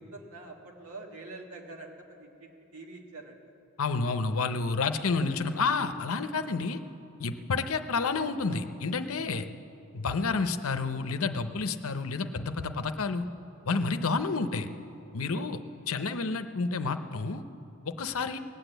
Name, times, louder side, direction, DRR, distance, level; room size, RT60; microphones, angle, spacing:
voice 1, 0.0-3.4 6.3-6.5 15.3-15.6, right 2 dB, 80° right, 1 dB, 1.6 m, -46 dB
voice 2, 3.8-6.8 7.2-9.5 9.9-13.3 13.7-14.7 15.1-15.6 15.9-17.4 18.0-18.4, left 4 dB, 70° left, 9 dB, 0.7 m, -29 dB
18.5 x 8.2 x 7.9 m, 2.9 s
head